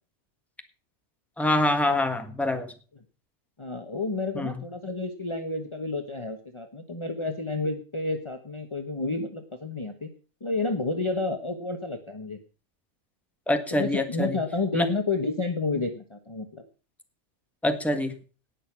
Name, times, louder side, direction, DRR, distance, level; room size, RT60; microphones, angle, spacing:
voice 1, 1.4-2.7 4.3-4.6 13.5-14.4 14.7-14.9 17.6-18.1, left 1 dB, ahead, 7 dB, 1.4 m, -25 dB
voice 2, 3.6-10.1 10.4-12.4 13.7-16.6, left 3 dB, 25° left, 6 dB, 1.1 m, -30 dB
18.0 x 6.6 x 6.0 m, 0.38 s
omnidirectional pair, 1.2 m